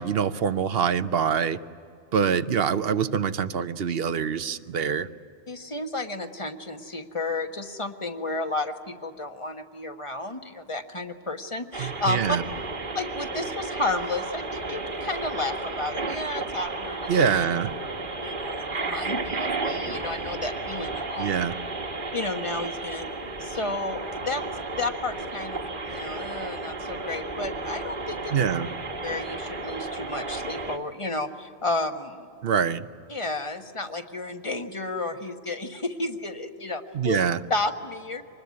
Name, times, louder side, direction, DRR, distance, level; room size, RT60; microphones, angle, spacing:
voice 1, 0.0-1.6 2.1-5.1 11.8-12.4 17.1-17.7 21.2-21.5 28.3-28.7 32.4-32.8 36.9-37.4, right 7 dB, 65° right, 13 dB, 1.0 m, -25 dB
voice 2, 5.5-12.4 12.9-17.1 18.2-21.3 22.1-23.1 23.4-24.4 24.7-28.4 29.0-32.3 33.1-37.2 37.5-38.2, left 2 dB, 30° left, 6 dB, 1.4 m, -32 dB
sound 1, 11.7-30.8, right 3 dB, 50° right, 1.5 m, -33 dB
25.0 x 20.5 x 9.6 m, 2.4 s
omnidirectional pair, 1.1 m